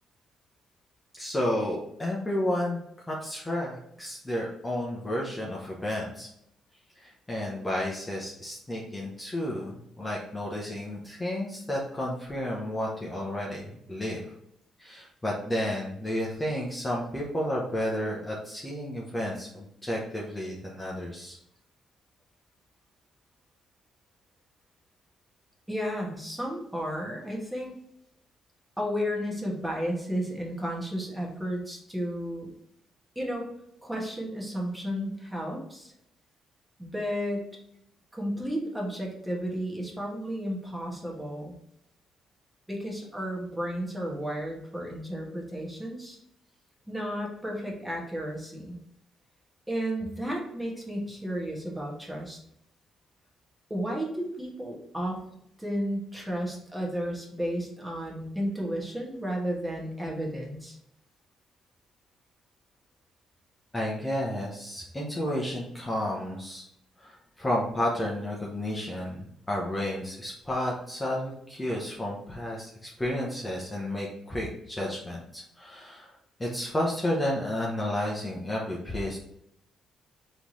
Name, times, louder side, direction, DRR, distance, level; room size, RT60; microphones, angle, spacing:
voice 1, 1.1-2.8 3.1-6.3 7.0-14.2 14.8-21.4 63.7-66.7 67.0-76.1 76.4-79.2, left 1 dB, 15° left, -3 dB, 0.9 m, -31 dB
voice 2, 25.7-27.7 28.8-32.5 33.1-33.5 33.8-35.9 36.8-37.4 38.1-41.5 42.7-46.2 46.9-48.8 49.7-52.4 53.7-55.2 55.6-60.8, equal, 10° right, -2 dB, 1.3 m, -33 dB
3.4 x 3.1 x 4.1 m, 0.74 s
cardioid pair, 90°, 0 cm